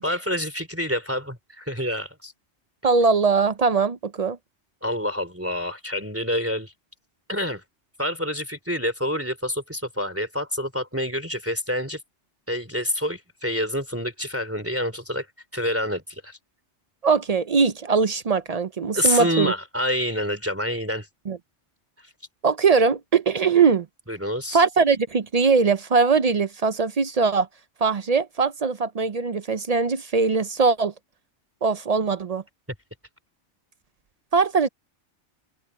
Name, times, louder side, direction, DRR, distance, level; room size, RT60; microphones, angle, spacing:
voice 1, 0.0-2.3 4.8-6.7 7.3-7.6 8.0-12.0 12.5-15.3 15.5-16.4 18.9-21.1 22.0-22.1 24.1-24.6, equal, 10° right, 3.2 m, -27 dB
voice 2, 2.8-4.4 17.0-19.5 21.3-21.4 22.4-23.9 24.5-27.5 27.8-30.9 31.6-32.4 34.3-34.7, right 5 dB, 45° right, 0.5 m, -21 dB
open air
omnidirectional pair, 1.2 m